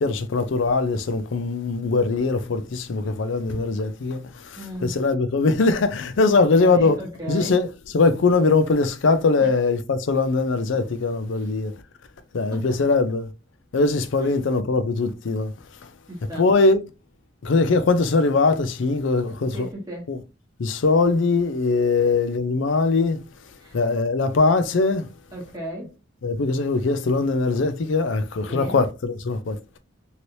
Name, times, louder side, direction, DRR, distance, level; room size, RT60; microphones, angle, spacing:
voice 1, 0.0-7.0 7.3-7.7 7.9-11.7 12.3-13.3 13.7-15.5 16.4-16.8 17.4-19.7 20.1-20.2 20.6-23.2 23.7-25.1 26.2-29.8, left 3 dB, 65° left, 0.5 m, -21 dB
voice 2, 4.5-4.9 6.3-7.6 9.4-9.5 11.3-11.5 12.5-12.8 14.2-14.3 16.1-16.5 19.3-20.1 21.9-22.1 23.6-23.8 25.3-26.0 28.5-28.8, right 1 dB, 20° right, 1.0 m, -36 dB
3.1 x 2.8 x 2.7 m
head